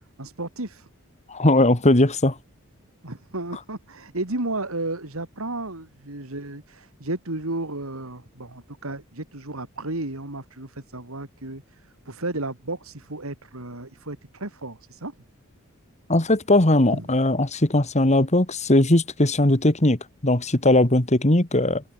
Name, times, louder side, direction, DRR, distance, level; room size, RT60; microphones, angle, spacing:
voice 1, 0.2-0.9 3.0-15.1 16.9-17.0, right 2 dB, 80° right, 3.4 m, -33 dB
voice 2, 1.3-2.3 16.1-21.8, left 1 dB, 35° left, 2.3 m, -19 dB
open air
head